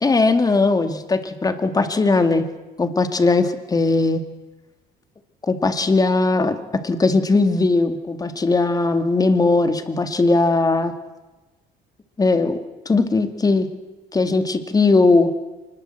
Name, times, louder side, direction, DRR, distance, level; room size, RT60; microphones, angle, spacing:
voice 1, 0.0-2.4 2.8-4.2 5.4-6.6 6.8-10.9 12.2-12.6 12.9-13.7 14.1-15.3, left 3 dB, 20° left, 8 dB, 2.2 m, -19 dB
25.0 x 20.5 x 7.8 m, 1.1 s
cardioid pair, 110°, 17 cm